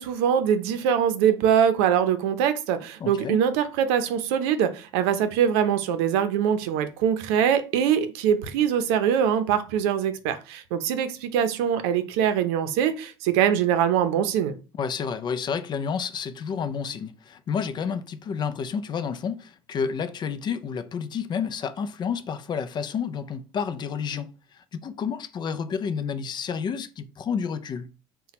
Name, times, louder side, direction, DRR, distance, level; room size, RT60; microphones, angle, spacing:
voice 1, 0.0-14.5, right 8 dB, 90° right, 0.6 m, -23 dB
voice 2, 3.0-3.4 14.7-27.9, left 6 dB, 35° left, 0.4 m, -30 dB
4.1 x 2.2 x 4.1 m
cardioid pair, 120°, 13 cm